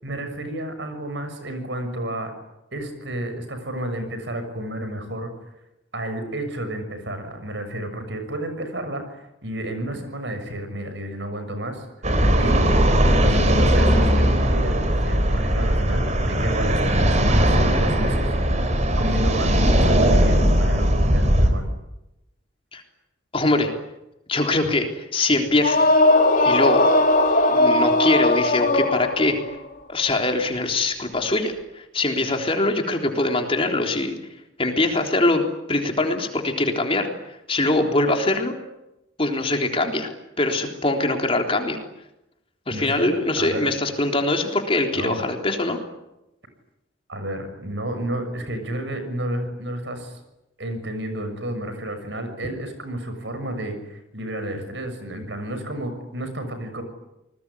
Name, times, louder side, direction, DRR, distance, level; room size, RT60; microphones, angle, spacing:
voice 1, 0.0-2.3 2.7-5.3 5.9-11.9 12.4-12.7 13.0-18.3 19.0-21.7 42.7-43.7 45.0-45.2 47.1-50.2 50.6-56.8, right 1 dB, 65° right, 8 dB, 6.6 m, -31 dB
sound 1, 12.0-21.5, equal, 35° right, 4.2 m, -19 dB
voice 2, 23.3-23.7 24.3-25.9 26.4-26.9 27.5-29.4 29.9-34.2 34.6-35.4 35.7-37.1 37.5-38.5 39.2-40.1 40.4-41.8 42.7-45.8, left 2 dB, 30° left, 3 dB, 3.7 m, -22 dB
sound 2, 25.6-29.5, left 2 dB, 45° left, 3.6 m, -18 dB
28.5 x 20.5 x 9.9 m, 0.91 s
head